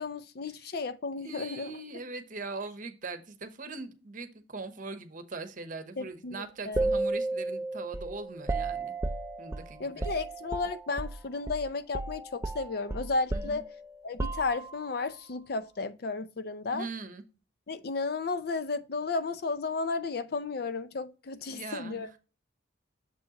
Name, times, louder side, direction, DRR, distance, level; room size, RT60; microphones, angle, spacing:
voice 1, 0.0-1.7 6.0-6.8 9.8-13.7 14.0-16.8 17.7-22.2, left 4 dB, 50° left, 0.5 m, -33 dB
voice 2, 1.1-9.0 9.4-10.1 13.3-13.6 16.7-17.2 21.5-22.2, right 3 dB, 45° right, 0.9 m, -41 dB
sound 1, 6.8-11.2 11.5-11.7 11.9-14.9, right 2 dB, 15° right, 0.4 m, -33 dB
7.0 x 5.1 x 2.9 m
head